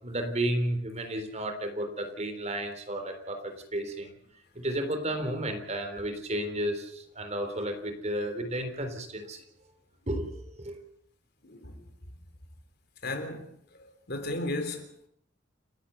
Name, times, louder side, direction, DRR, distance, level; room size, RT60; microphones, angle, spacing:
voice 1, 0.0-4.1 4.6-9.4 10.1-10.8, right 1 dB, 35° right, 3.6 m, -32 dB
voice 2, 11.5-11.8 13.0-13.5 14.1-15.1, left 2 dB, 55° left, 3.5 m, -34 dB
30.0 x 11.5 x 8.0 m
head